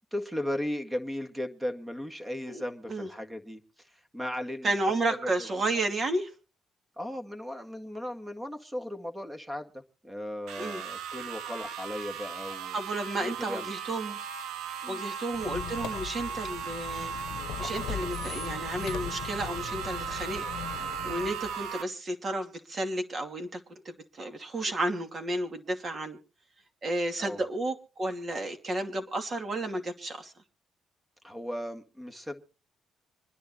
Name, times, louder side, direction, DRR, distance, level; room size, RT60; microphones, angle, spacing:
voice 1, 0.1-4.7 5.1-5.5 7.0-12.8 13.2-13.7 14.8-15.0 27.2-27.4 31.2-32.4, left 1 dB, 10° right, 6 dB, 1.8 m, -36 dB
voice 2, 4.6-6.3 10.6-10.8 12.7-14.2 14.9-17.1 17.6-20.4 20.7-26.2 26.8-30.3, right 2 dB, 40° right, 5 dB, 2.6 m, -32 dB
sound 1, 10.5-21.8, right 7 dB, 85° right, 1.1 m, -37 dB
Squeak, 15.3-21.7, left 10 dB, 85° left, 0.8 m, -40 dB
26.0 x 10.5 x 3.0 m, 0.34 s
cardioid pair, 90°, 0 cm